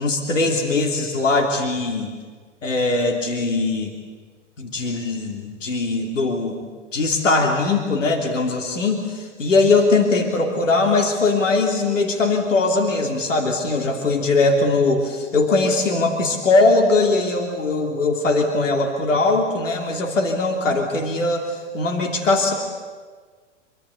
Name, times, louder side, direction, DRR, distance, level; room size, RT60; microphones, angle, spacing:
voice 1, 0.0-2.1 2.6-3.9 4.6-6.6 6.9-22.5, left 3 dB, 85° left, 2 dB, 3.1 m, -20 dB
26.0 x 25.0 x 8.4 m, 1.5 s
hypercardioid pair, 115°, 37 cm